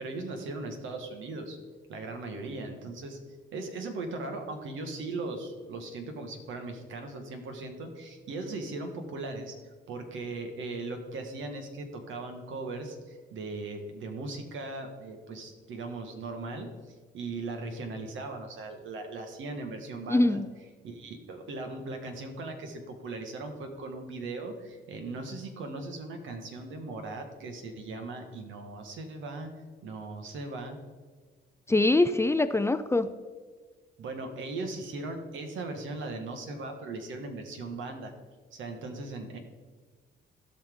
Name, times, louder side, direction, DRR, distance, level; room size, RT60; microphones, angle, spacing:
voice 1, 0.0-1.6 1.9-3.2 3.5-9.6 9.9-20.4 20.8-29.5 29.8-30.8 34.0-38.1 38.5-39.4, right 3 dB, 75° right, 5 dB, 1.6 m, -38 dB
voice 2, 20.1-20.5 31.7-33.1, left 2 dB, 15° left, 10 dB, 0.4 m, -23 dB
16.0 x 5.7 x 3.8 m, 1.5 s
cardioid pair, 90°, 20 cm